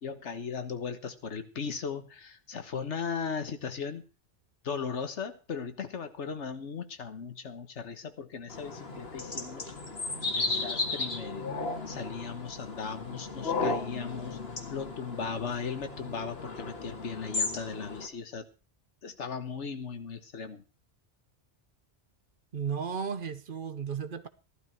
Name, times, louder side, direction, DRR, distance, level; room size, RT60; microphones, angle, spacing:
voice 1, 0.0-4.0 4.6-9.7 10.3-14.4 14.7-18.4 19.0-20.6, left 6 dB, 90° left, 1.6 m, -37 dB
sound 1, 8.5-18.1, left 3 dB, 60° left, 2.0 m, -35 dB
voice 2, 22.5-24.3, right 6 dB, 50° right, 1.0 m, -34 dB
14.5 x 12.0 x 4.5 m
omnidirectional pair, 1.2 m